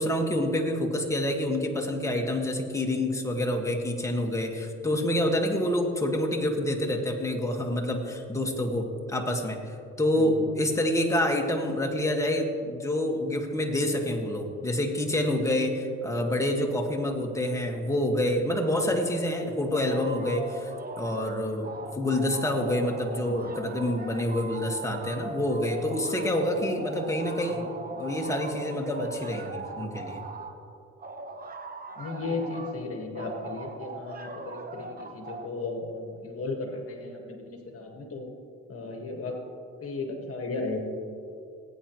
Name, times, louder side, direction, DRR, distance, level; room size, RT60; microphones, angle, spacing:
voice 1, 0.0-9.6 10.0-27.7 28.0-30.2, left 1 dB, 10° left, 1 dB, 1.6 m, -27 dB
voice 2, 10.1-10.4 27.5-27.6 32.0-38.3 38.7-39.4 39.8-40.8, left 3 dB, 50° left, 2 dB, 1.6 m, -35 dB
sound 1, 19.7-21.3 21.6-30.5 31.0-32.7 33.1-35.5, right 3 dB, 30° right, 1.1 m, -40 dB
18.0 x 9.0 x 3.1 m, 2.5 s
cardioid pair, 90°, 30 cm